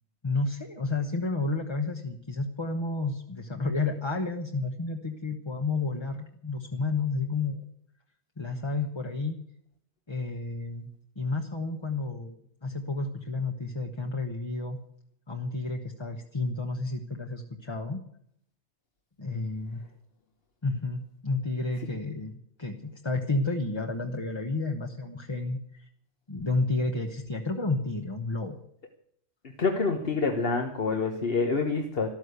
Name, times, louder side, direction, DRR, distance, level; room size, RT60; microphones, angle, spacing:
voice 1, 0.2-7.6 8.4-9.4 10.1-10.9 11.2-12.4 12.6-14.8 15.3-18.0 19.2-19.8 20.6-25.9 26.3-28.6, left 3 dB, 25° left, 3 dB, 1.0 m, -31 dB
voice 2, 29.6-32.1, left 4 dB, 55° left, 4 dB, 1.4 m, -27 dB
13.5 x 13.0 x 8.1 m, 0.70 s
omnidirectional pair, 1.2 m